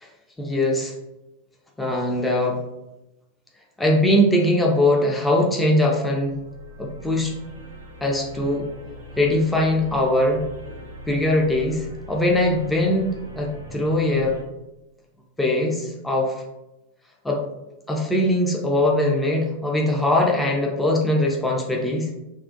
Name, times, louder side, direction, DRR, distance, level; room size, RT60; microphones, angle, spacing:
voice 1, 0.4-0.9 1.8-2.6 3.8-6.3 6.8-7.3 8.0-8.7 9.2-10.4 11.1-13.1 13.4-14.4 15.4-16.4 17.2-17.4 17.9-22.1, left 1 dB, 5° left, -1 dB, 0.3 m, -21 dB
sound 1, 6.1-14.4, right 1 dB, 75° right, 0.4 m, -40 dB
2.4 x 2.0 x 2.6 m, 0.97 s
figure-of-eight pair, 90°, 0 cm